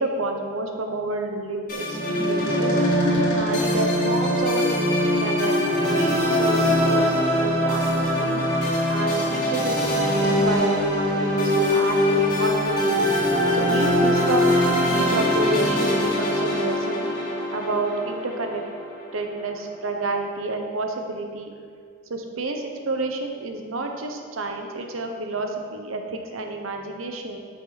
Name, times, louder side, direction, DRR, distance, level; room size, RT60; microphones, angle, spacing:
voice 1, 0.0-2.8 3.3-8.6 8.9-13.0 13.5-17.1 17.5-18.6 19.1-21.5 22.1-27.4, right 2 dB, 85° right, 4 dB, 0.9 m, -29 dB
sound 1, 1.7-19.1, left 1 dB, 45° left, 2.1 m, -22 dB
sound 2, 6.2-8.9 9.6-12.6 13.0-16.2, right 1 dB, 25° left, 1.1 m, -40 dB
9.1 x 6.3 x 4.0 m, 2.1 s
head